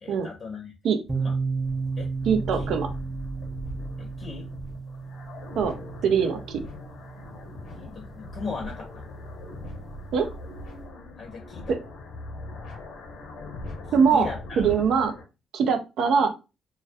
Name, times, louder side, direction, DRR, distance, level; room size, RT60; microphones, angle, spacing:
voice 1, 0.0-0.7 1.1-1.3 2.0-2.1 2.6-2.7 4.0-4.5 7.7-9.0 11.2-11.7 14.1-14.7, left 4 dB, 50° left, 2 dB, 0.6 m, -37 dB
sound 1, 1.0-15.2, left 1 dB, 85° left, 0.7 m, -40 dB
sound 2, 1.1-8.8, right 4 dB, 15° right, 0.4 m, -34 dB
voice 2, 2.3-2.9 5.6-5.7 6.0-6.6 10.1-10.3 13.9-14.3 14.6-15.1 15.5-16.3, right 6 dB, 75° right, 7 dB, 0.4 m, -22 dB
2.3 x 2.2 x 2.5 m, 0.28 s
cardioid pair, 90°, 0 cm